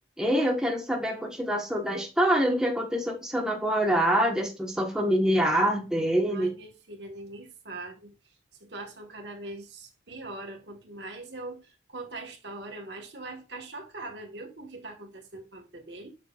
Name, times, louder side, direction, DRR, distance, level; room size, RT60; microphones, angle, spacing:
voice 1, 0.2-6.5, equal, 5° right, 1.2 m, -25 dB
voice 2, 6.3-8.1 8.6-16.1, right 2 dB, 65° right, 1.4 m, -42 dB
7.0 x 6.0 x 2.4 m
head